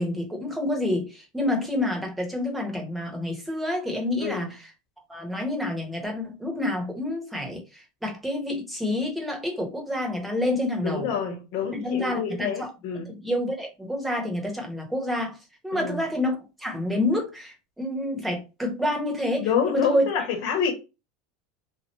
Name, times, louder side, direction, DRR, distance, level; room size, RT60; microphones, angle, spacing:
voice 1, 0.0-4.7 5.1-7.6 8.0-11.1 11.7-12.7 13.1-15.4 15.6-20.1, left 1 dB, 5° right, 1.2 m, -28 dB
voice 2, 4.2-4.5 10.8-13.1 15.7-16.0 19.4-20.7, left 7 dB, 65° left, 1.3 m, -27 dB
2.9 x 2.6 x 3.1 m
supercardioid pair, 110°, 0 cm